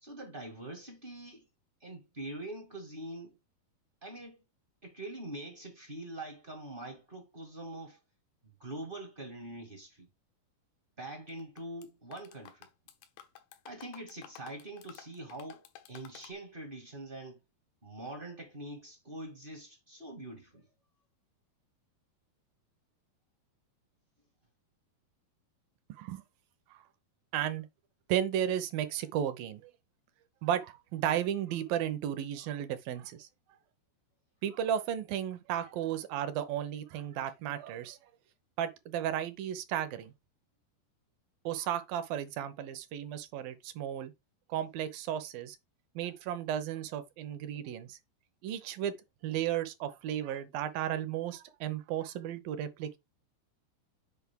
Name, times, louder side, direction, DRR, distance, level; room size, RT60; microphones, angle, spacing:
voice 1, 0.0-1.4 1.8-3.4 4.0-4.4 4.8-8.0 8.6-10.1 11.0-12.7 13.6-17.4 17.8-20.7, right 1 dB, 40° right, 0.7 m, -44 dB
sound 1, 11.3-11.9 12.1-16.3, left 10 dB, 85° left, 3.1 m, -53 dB
voice 2, 27.3-27.7 28.1-29.6 30.4-33.3 34.4-38.0 38.6-40.1 41.4-44.1 44.5-45.6 46.0-48.0 48.4-49.0 49.2-53.0, right 10 dB, 75° right, 2.4 m, -34 dB
8.2 x 5.2 x 3.7 m
omnidirectional pair, 4.7 m